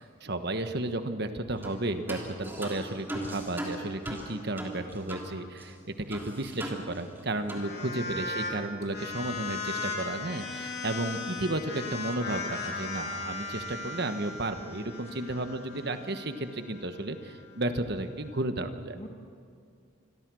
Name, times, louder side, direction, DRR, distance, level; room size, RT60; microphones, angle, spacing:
voice 1, 0.0-19.0, right 2 dB, 55° right, 8 dB, 1.3 m, -33 dB
sound 1, 1.6-1.8 2.1-5.3 5.6-5.7 6.1-7.2 7.5-7.7, right 1 dB, 10° right, 3.2 m, -39 dB
sound 2, 7.4-8.5 8.8-18.4, left 3 dB, 50° left, 3.5 m, -38 dB
voice 2, 14.9-15.3 18.9-19.1, left 1 dB, 30° left, 0 dB, 1.8 m, -47 dB
27.5 x 22.0 x 6.3 m, 2.2 s
head